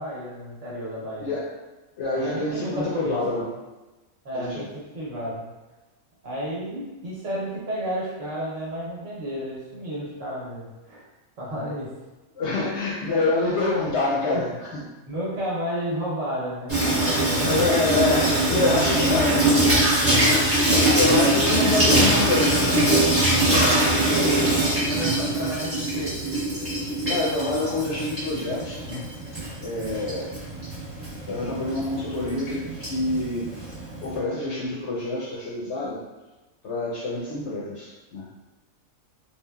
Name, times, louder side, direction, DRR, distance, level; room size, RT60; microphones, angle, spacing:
voice 1, 0.0-1.3 2.1-3.4 4.2-5.4 6.2-11.0 11.4-11.9 13.2-13.3 14.3-14.6 15.1-17.6 23.9-26.2, right 1 dB, 60° right, -6 dB, 1.2 m, -32 dB
voice 2, 1.2-1.5 2.0-3.5 4.3-4.7 12.4-14.9 17.4-19.6 20.4-22.9 27.1-29.0 29.6-30.4 31.2-33.5 34.0-36.0 36.6-38.3, left 2 dB, 65° left, -5 dB, 0.8 m, -26 dB
Water tap faucet / Sink (filling or washing), 16.7-34.2, right 1 dB, 10° right, 0.9 m, -23 dB
3.3 x 2.2 x 2.2 m, 1.1 s
omnidirectional pair, 1.5 m